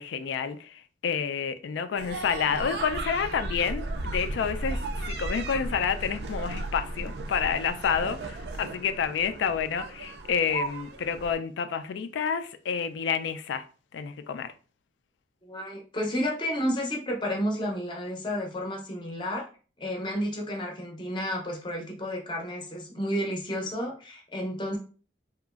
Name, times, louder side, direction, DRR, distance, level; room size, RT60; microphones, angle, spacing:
voice 1, 0.0-13.6 13.9-14.5, left 6 dB, 85° left, 0.3 m, -29 dB
sound 1, 2.0-11.4, right 2 dB, 65° right, 0.3 m, -35 dB
voice 2, 15.4-19.5 19.8-24.8, equal, 25° left, 0.5 m, -31 dB
2.9 x 2.4 x 2.3 m
head